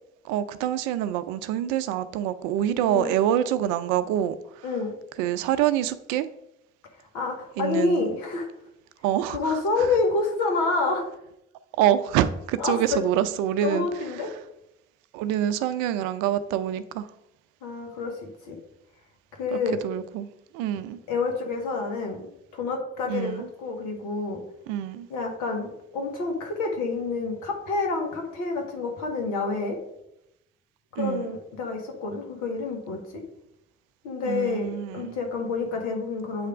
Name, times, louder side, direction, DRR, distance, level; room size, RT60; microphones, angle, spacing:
voice 1, 0.2-4.7 5.2-6.3 7.6-8.1 9.0-9.9 11.8-13.9 14.1-14.3 15.1-17.1 19.5-21.0 23.1-23.5 24.7-25.1 31.0-31.3 34.2-35.2, right 11 dB, 80° right, 13 dB, 0.5 m, -26 dB
voice 2, 2.9-3.2 4.6-5.0 7.1-8.5 9.3-11.0 12.6-13.0 13.6-14.3 17.6-18.2 18.5-18.6 19.4-19.8 21.1-24.4 25.1-29.8 30.9-33.0 34.0-36.5, left 3 dB, 80° left, 2 dB, 1.5 m, -28 dB
7.9 x 3.4 x 4.9 m, 0.81 s
hypercardioid pair, 50°, 30 cm